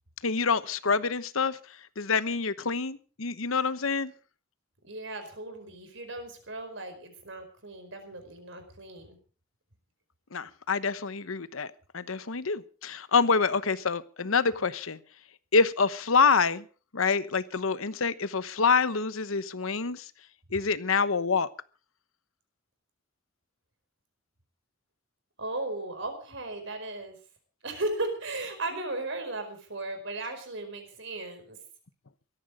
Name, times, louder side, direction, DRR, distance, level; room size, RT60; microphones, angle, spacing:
voice 1, 0.2-1.6 2.0-4.1 10.3-15.0 15.5-16.6 16.9-20.0 20.5-21.5, left 5 dB, 75° left, 14 dB, 1.0 m, -26 dB
voice 2, 4.8-9.2 25.4-27.2 27.6-31.6, right 2 dB, 60° right, 7 dB, 4.8 m, -36 dB
17.0 x 14.0 x 5.0 m, 0.38 s
head